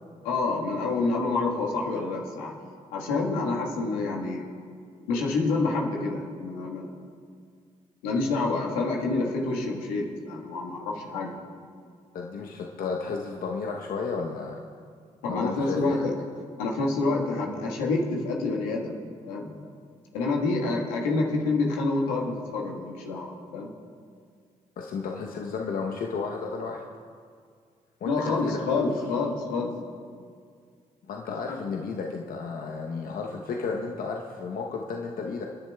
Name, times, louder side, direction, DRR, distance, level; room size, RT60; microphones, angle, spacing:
voice 1, 0.2-2.5 2.9-4.5 5.1-6.9 8.0-11.4 15.2-16.1 16.6-19.5 20.1-23.7 28.0-29.7 31.5-31.6, left 3 dB, 85° left, -1 dB, 1.6 m, -28 dB
voice 2, 12.1-14.6 15.2-16.0 24.8-26.8 28.0-28.9 31.1-35.5, left 4 dB, 60° left, 1 dB, 1.0 m, -33 dB
28.0 x 10.5 x 2.3 m, 2.1 s
hypercardioid pair, 40°, 16 cm